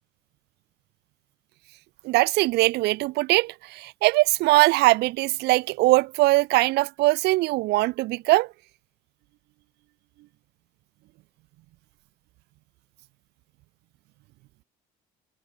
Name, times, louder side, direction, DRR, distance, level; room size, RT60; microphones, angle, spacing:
voice 1, 2.0-8.5, right 20 dB, 80° right, 0.4 m, -21 dB
cardioid pair, 110°, 17 cm